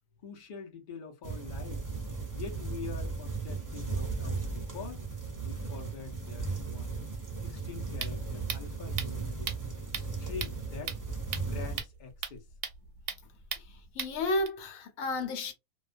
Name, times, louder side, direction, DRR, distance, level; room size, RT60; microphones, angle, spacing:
voice 1, 0.2-1.8 2.3-5.1 5.4-7.0 7.4-9.5 9.9-10.9 11.5-12.5, left 6 dB, 45° left, 0.7 m, -44 dB
sound 1, 1.2-11.8, right 4 dB, 25° right, 0.4 m, -36 dB
sound 2, 7.6-14.5, right 7 dB, 65° right, 0.8 m, -40 dB
voice 2, 13.6-15.5, left 2 dB, 80° left, 1.1 m, -32 dB
2.3 x 2.3 x 2.4 m
omnidirectional pair, 1.4 m